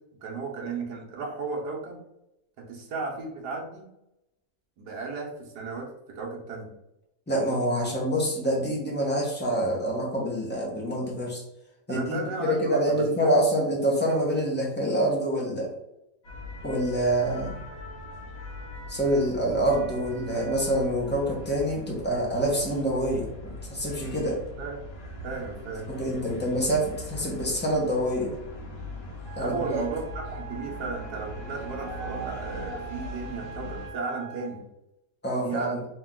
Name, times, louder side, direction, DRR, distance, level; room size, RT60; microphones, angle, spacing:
voice 1, 0.2-2.0 2.6-3.9 4.8-6.7 11.9-13.4 24.6-24.9 25.2-25.9 29.4-34.6 35.4-35.9, right 4 dB, 70° right, 0 dB, 1.5 m, -34 dB
voice 2, 7.3-11.4 11.9-15.7 16.6-17.6 18.9-24.4 25.9-28.4 29.4-29.8 35.2-35.7, equal, 10° left, -3 dB, 0.6 m, -26 dB
sound 1, 16.2-33.9, equal, 60° left, 1.4 m, -40 dB
Wind instrument woodwind instrument, 29.2-34.6, right 7 dB, 50° right, 0.6 m, -44 dB
3.5 x 3.0 x 3.7 m, 0.87 s
omnidirectional pair, 1.8 m